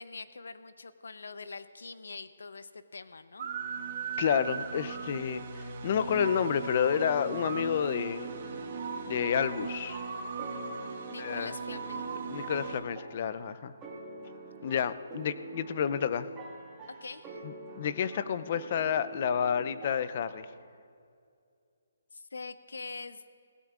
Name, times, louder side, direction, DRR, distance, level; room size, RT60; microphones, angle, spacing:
voice 1, 0.0-3.5 11.1-12.0 17.0-17.4 22.1-23.3, left 4 dB, 85° left, 13 dB, 0.7 m, -44 dB
sound 1, 3.4-12.8, right 5 dB, 45° right, 1.2 m, -38 dB
voice 2, 4.2-8.3 9.1-10.1 11.2-11.5 12.3-13.7 14.6-16.3 17.4-20.5, left 8 dB, 40° left, 13 dB, 0.5 m, -30 dB
sound 2, 6.9-20.7, right 2 dB, 15° right, 1.7 m, -46 dB
20.5 x 16.5 x 2.4 m, 2.4 s
hypercardioid pair, 165°, 0 cm